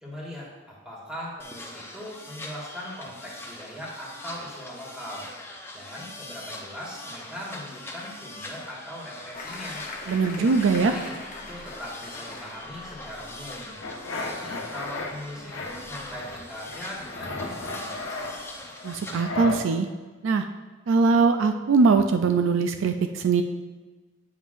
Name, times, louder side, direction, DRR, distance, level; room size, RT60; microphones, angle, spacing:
voice 1, 0.0-5.3 5.7-9.8 10.4-11.1 11.5-13.7 14.1-18.3, equal, 5° right, -6 dB, 1.7 m, -40 dB
sound 1, 1.4-19.2, left 1 dB, 10° left, 0.6 m, -42 dB
sound 2, 9.3-18.6, left 2 dB, 40° left, 0.9 m, -44 dB
voice 2, 10.1-10.9 18.8-19.9 20.2-20.5 20.9-23.4, right 4 dB, 70° right, 7 dB, 0.4 m, -21 dB
sound 3, 13.8-15.1 15.5-16.4 16.7-19.6, left 2 dB, 85° left, 0.9 m, -34 dB
8.8 x 5.4 x 2.5 m, 1.3 s
head